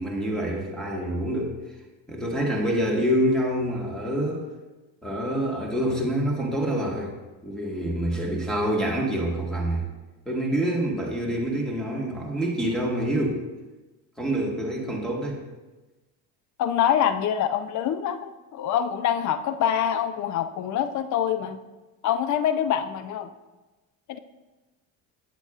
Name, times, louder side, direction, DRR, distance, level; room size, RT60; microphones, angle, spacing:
voice 1, 0.0-1.5 2.1-4.4 5.0-7.1 7.4-9.9 10.2-13.4 14.2-15.4, right 1 dB, ahead, -1 dB, 1.6 m, -26 dB
voice 2, 16.6-21.6 22.0-23.3 24.1-24.2, left 9 dB, 40° left, 11 dB, 0.5 m, -25 dB
8.3 x 7.9 x 2.4 m, 1.2 s
supercardioid pair, 100°, 45 cm